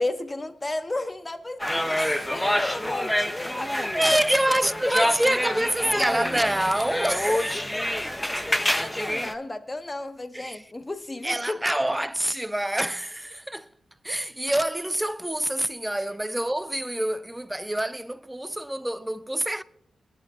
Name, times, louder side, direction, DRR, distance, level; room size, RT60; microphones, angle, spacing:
voice 1, 0.0-2.0 2.3-4.2 4.5-4.6 4.8-5.1 7.2-11.6, left 2 dB, 25° left, 1.2 m, -33 dB
sound 1, 1.6-9.3, left 1 dB, 10° left, 1.0 m, -27 dB
voice 2, 1.8-2.3 3.9-7.6 10.3-10.6 11.2-13.7 14.0-19.6, right 1 dB, 10° right, 0.7 m, -26 dB
21.5 x 11.0 x 2.8 m
supercardioid pair, 50°, 0 cm